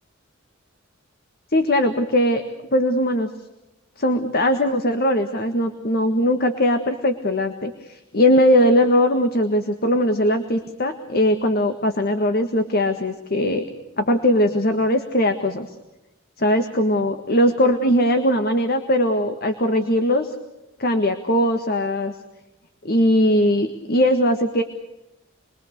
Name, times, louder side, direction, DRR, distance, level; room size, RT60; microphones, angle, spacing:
voice 1, 1.5-2.4 2.7-3.3 4.0-13.7 14.0-15.7 16.4-20.3 20.8-22.2 22.8-24.6, left 1 dB, 50° left, 7 dB, 1.6 m, -20 dB
28.5 x 22.5 x 6.7 m, 0.99 s
head